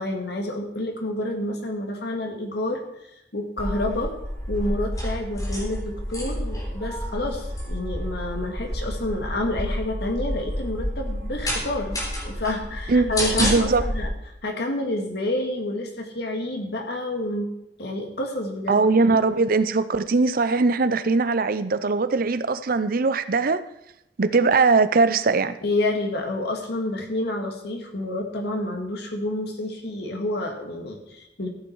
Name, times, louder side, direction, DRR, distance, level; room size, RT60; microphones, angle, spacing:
voice 1, 0.0-2.8 3.3-4.1 4.5-14.1 14.4-17.5 17.8-18.9 25.6-31.5, left 1 dB, 65° left, 2 dB, 2.2 m, -29 dB
sound 1, 3.6-14.1, equal, 20° left, 3.8 m, -29 dB
voice 2, 13.4-13.9 18.7-23.6 24.2-25.5, right 4 dB, 55° right, 12 dB, 0.6 m, -20 dB
14.0 x 8.9 x 4.7 m, 0.80 s
head